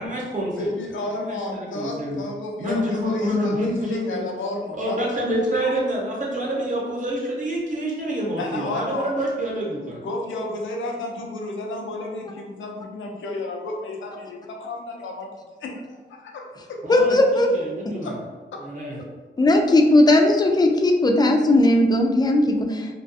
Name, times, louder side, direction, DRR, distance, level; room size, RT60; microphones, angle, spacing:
voice 1, 0.0-0.7 1.1-2.2 2.6-4.3 4.8-10.0 16.8-18.1 18.6-19.0, equal, 40° right, -4 dB, 0.9 m, -27 dB
voice 2, 0.6-5.0 5.4-5.8 8.4-9.1 10.0-15.3 15.6-16.8 18.0-18.2 18.5-18.6, left 2 dB, 90° left, 0 dB, 0.5 m, -32 dB
voice 3, 16.9-17.5 17.9-18.0 19.4-22.9, left 1 dB, 20° left, 3 dB, 0.3 m, -17 dB
2.4 x 2.3 x 2.6 m, 1.3 s
cardioid pair, 75°, 19 cm